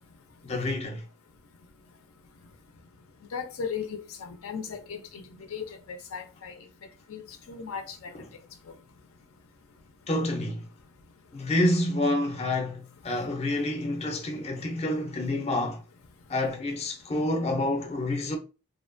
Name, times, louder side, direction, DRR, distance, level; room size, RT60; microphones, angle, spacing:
voice 1, 0.4-1.0 8.1-8.3 10.1-10.7 11.3-15.8 16.3-18.4, left 1 dB, 30° left, 0.5 m, -28 dB
voice 2, 3.3-6.6 7.1-7.2 7.5-8.1, left 6 dB, 80° left, 0.5 m, -37 dB
2.7 x 2.1 x 2.5 m
head